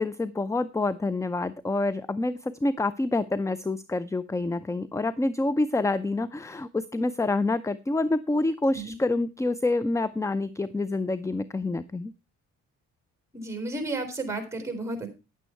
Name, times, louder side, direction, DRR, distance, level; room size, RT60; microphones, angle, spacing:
voice 1, 0.0-12.1, left 2 dB, 10° left, 17 dB, 0.5 m, -27 dB
voice 2, 13.3-15.1, right 2 dB, 10° right, 8 dB, 3.9 m, -32 dB
10.0 x 9.0 x 4.4 m, 0.28 s
cardioid pair, 90°, 30 cm